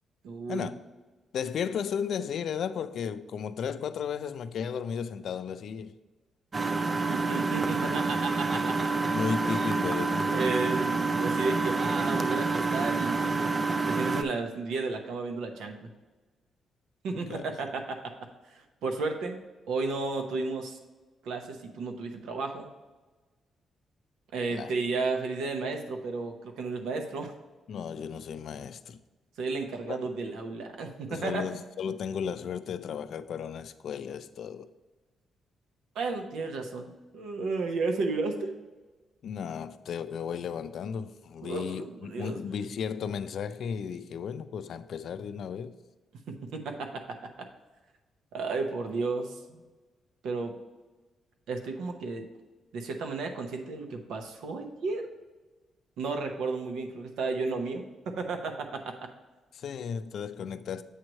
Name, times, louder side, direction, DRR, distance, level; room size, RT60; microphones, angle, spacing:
voice 1, 0.2-0.7 7.1-9.2 10.3-13.5 13.9-15.9 17.0-18.1 18.5-19.4 19.7-20.8 21.2-22.7 24.3-27.3 29.4-31.4 35.9-38.5 41.4-42.4 46.3-47.5 48.3-49.6 50.2-50.5 51.5-52.3 52.7-55.1 56.0-59.1, right 3 dB, 90° right, 0.9 m, -33 dB
voice 2, 1.3-6.0 9.1-10.3 17.3-17.5 24.5-24.7 27.7-29.0 29.9-30.0 31.1-34.7 39.2-45.8 59.5-60.8, left 7 dB, 60° left, 0.4 m, -34 dB
Engine, 6.5-14.2, right 3 dB, 25° right, 0.4 m, -28 dB
8.2 x 3.1 x 6.3 m
cardioid pair, 140°, 0 cm